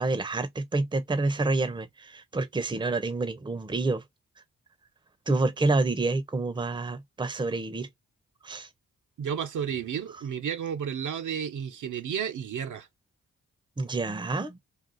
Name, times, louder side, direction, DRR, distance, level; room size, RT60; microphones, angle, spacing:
voice 1, 0.0-4.0 5.3-7.9 8.4-8.7 13.8-14.6, right 3 dB, 15° right, 0.6 m, -28 dB
voice 2, 9.2-12.9, right 8 dB, 60° right, 0.6 m, -32 dB
2.5 x 2.4 x 3.8 m
supercardioid pair, 40°, 35 cm